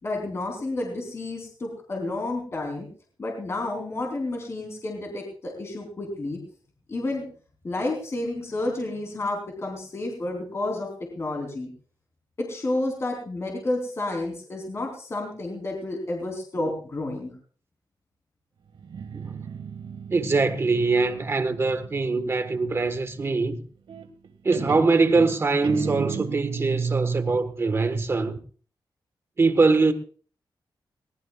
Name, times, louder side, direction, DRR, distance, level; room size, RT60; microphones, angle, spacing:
voice 1, 0.0-2.9 3.2-6.4 6.9-7.2 7.6-10.9 11.2-11.7 12.4-17.3, left 2 dB, 35° left, 3.3 m, -30 dB
Guitar, 18.7-22.3 23.9-24.3 24.5-27.5, right 6 dB, 90° right, 1.8 m, -33 dB
voice 2, 20.1-23.6 24.4-28.4 29.4-29.9, right 3 dB, 30° right, 1.3 m, -23 dB
21.0 x 19.0 x 2.3 m
wide cardioid pair, 180°, 8 cm